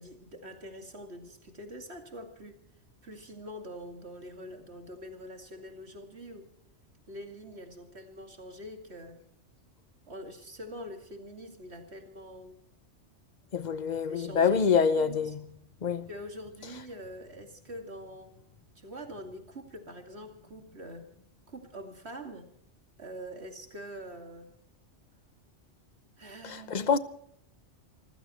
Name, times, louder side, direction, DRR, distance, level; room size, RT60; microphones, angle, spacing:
voice 1, 0.0-2.6 3.0-6.5 7.1-9.2 10.1-12.6 14.1-15.3 16.1-18.4 18.7-21.1 21.5-22.5 23.0-24.5 26.2-26.9, equal, 60° right, 2.7 m, -44 dB
voice 2, 13.5-15.4 15.8-16.1 26.4-27.0, left 6 dB, 40° left, 1.0 m, -26 dB
27.0 x 15.5 x 3.1 m
omnidirectional pair, 1.2 m